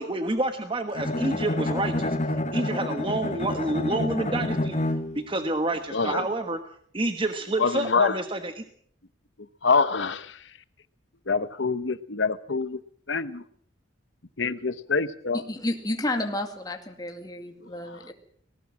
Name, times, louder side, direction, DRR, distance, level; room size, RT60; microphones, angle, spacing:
voice 1, 0.0-6.6 6.9-8.6, right 2 dB, 25° right, 7 dB, 1.2 m, -29 dB
Bowed string instrument, 0.9-5.3, left 1 dB, 35° left, 1.2 m, -28 dB
voice 2, 5.9-6.2 7.6-8.1 9.6-10.3 11.3-12.8 13.1-13.4 14.4-15.4, left 4 dB, 70° left, 13 dB, 1.0 m, -25 dB
voice 3, 15.3-18.1, left 1 dB, 20° left, 4 dB, 2.2 m, -31 dB
19.0 x 18.5 x 7.4 m, 0.62 s
head